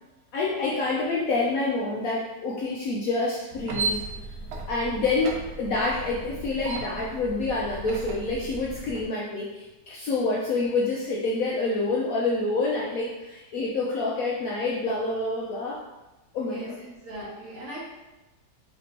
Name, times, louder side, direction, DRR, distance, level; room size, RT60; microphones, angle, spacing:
voice 1, 0.3-4.0 4.7-15.8 16.3-16.7, left 3 dB, 70° left, -4 dB, 0.8 m, -27 dB
sound 1, 3.5-9.1, right 3 dB, 70° right, 1.1 m, -35 dB
voice 2, 16.4-17.8, equal, 50° right, -8 dB, 1.1 m, -39 dB
3.3 x 3.1 x 2.8 m, 1.1 s
omnidirectional pair, 1.9 m